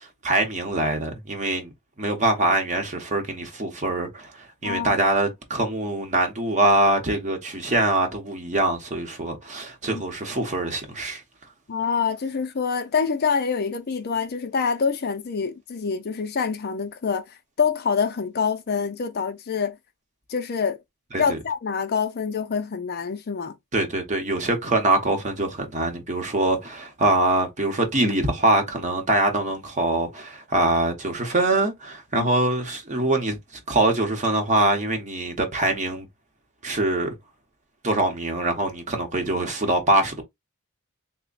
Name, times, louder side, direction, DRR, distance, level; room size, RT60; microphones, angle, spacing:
voice 1, 0.0-1.7 2.0-11.2 21.1-21.4 23.7-33.4 33.7-36.0 36.6-37.1 37.8-40.2, right 2 dB, 35° right, 0.9 m, -23 dB
voice 2, 4.6-5.0 9.9-10.0 11.7-19.8 20.3-20.8 21.2-23.6 32.1-32.3, left 6 dB, 45° left, 0.5 m, -26 dB
3.3 x 2.1 x 3.9 m
head